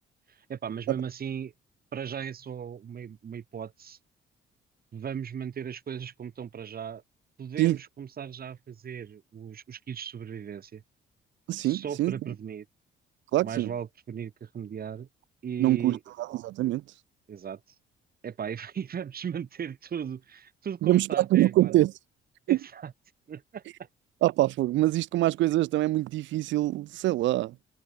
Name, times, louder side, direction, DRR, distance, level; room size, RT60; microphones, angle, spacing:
voice 1, 0.3-1.5 1.9-4.0 4.9-7.0 7.4-10.8 11.6-12.7 13.4-15.1 15.4-16.0 17.3-17.6 18.2-21.8 22.5-22.9 23.3-23.9, right 8 dB, 50° right, 2.0 m, -37 dB
voice 2, 11.5-12.2 13.3-13.7 15.6-16.8 20.8-21.9 22.5-22.6 24.2-27.5, right 16 dB, 70° right, 0.4 m, -24 dB
cardioid pair, 90°, 20 cm